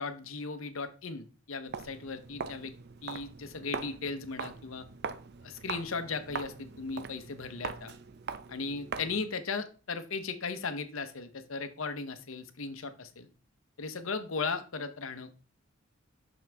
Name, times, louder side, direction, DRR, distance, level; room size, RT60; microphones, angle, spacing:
voice 1, 0.0-2.7 3.0-4.9 5.4-7.9 8.5-13.3 13.8-15.3, left 4 dB, 80° left, 10 dB, 0.9 m, -37 dB
Walk footsteps, 1.7-9.3, right 5 dB, 50° right, 0.5 m, -42 dB
6.2 x 6.1 x 3.4 m, 0.36 s
head